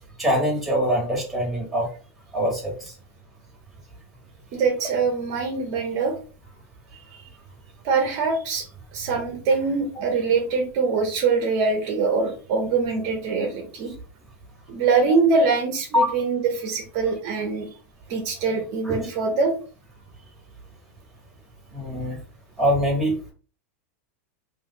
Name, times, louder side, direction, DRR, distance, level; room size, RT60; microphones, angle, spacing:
voice 1, 0.2-1.9 2.3-2.9 15.9-16.2 18.8-19.0 21.7-22.2 22.6-23.3, equal, ahead, -3 dB, 1.6 m, -23 dB
voice 2, 4.5-6.1 7.1-7.2 7.8-8.7 8.9-13.9 14.7-17.7 18.1-19.5, right 4 dB, 50° right, 3 dB, 0.9 m, -23 dB
3.3 x 2.6 x 3.8 m, 0.38 s
supercardioid pair, 140°, 8 cm